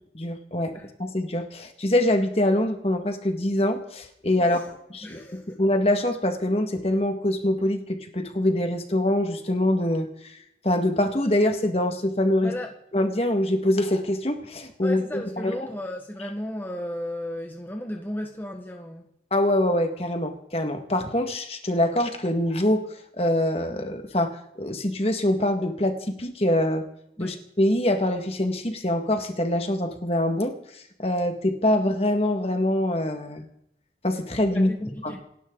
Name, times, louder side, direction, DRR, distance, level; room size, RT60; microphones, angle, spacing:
voice 1, 0.1-0.7 1.0-10.1 10.6-12.5 12.9-15.5 19.3-26.9 27.2-30.6 31.0-33.4 34.0-34.7 35.0-35.2, left 1 dB, 35° left, 6 dB, 1.9 m, -24 dB
voice 2, 5.0-5.6 12.4-12.7 14.8-19.0 27.2-27.4 34.5-35.2, left 1 dB, 10° left, 2 dB, 1.4 m, -34 dB
28.0 x 12.0 x 4.0 m, 0.76 s
head